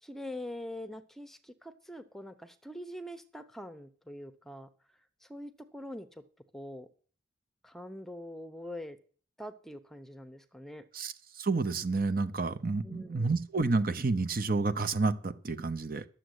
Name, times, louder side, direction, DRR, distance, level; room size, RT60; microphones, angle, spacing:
voice 1, 0.0-4.7 5.2-6.2 6.5-6.9 7.6-9.0 9.4-10.8 12.8-13.3, left 1 dB, ahead, 9 dB, 0.8 m, -44 dB
voice 2, 10.9-16.1, right 3 dB, 50° right, 12 dB, 0.8 m, -30 dB
11.5 x 7.5 x 8.0 m, 0.43 s
head